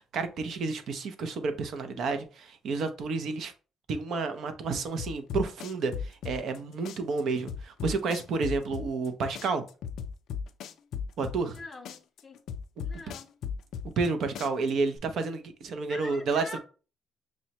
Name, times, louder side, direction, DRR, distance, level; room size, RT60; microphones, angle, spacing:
voice 1, 0.0-3.5 3.9-9.6 11.2-11.6 14.0-16.6, right 4 dB, 55° right, 0.5 m, -30 dB
sound 1, 5.0-6.6 6.8-9.1 9.3-11.6 11.8-14.1 14.3-15.0, left 7 dB, 65° left, 0.4 m, -36 dB
voice 2, 11.5-12.4 12.8-13.3 15.9-16.6, left 3 dB, 20° left, 0.6 m, -44 dB
6.0 x 2.1 x 2.8 m
cardioid pair, 155°, 0 cm